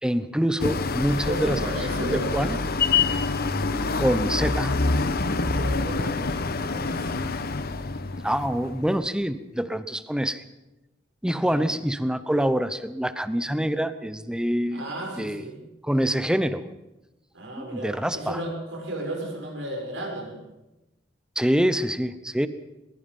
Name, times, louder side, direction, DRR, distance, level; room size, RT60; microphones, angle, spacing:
voice 1, 0.0-1.6 1.9-2.6 4.0-4.7 8.2-10.4 11.2-14.8 15.2-15.5 15.8-16.7 17.6-18.4 21.4-22.5, equal, 5° right, 12 dB, 0.9 m, -25 dB
sound 1, 0.6-8.9, left 3 dB, 55° left, 1.1 m, -26 dB
voice 2, 1.3-2.5 5.3-7.1 11.4-11.6 14.7-15.6 17.3-20.4, right 1 dB, 75° right, 1 dB, 6.7 m, -34 dB
22.0 x 21.5 x 5.5 m, 0.98 s
head